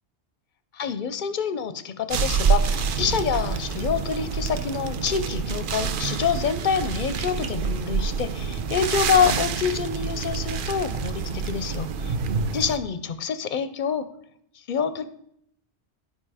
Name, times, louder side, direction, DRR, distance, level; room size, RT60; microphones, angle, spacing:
voice 1, 0.7-12.1 12.5-14.1 14.7-15.1, left 7 dB, 55° left, 12 dB, 0.6 m, -26 dB
sound 1, 2.1-12.8, right 6 dB, 60° right, 0.7 m, -27 dB
10.5 x 5.5 x 4.8 m, 0.72 s
omnidirectional pair, 1.1 m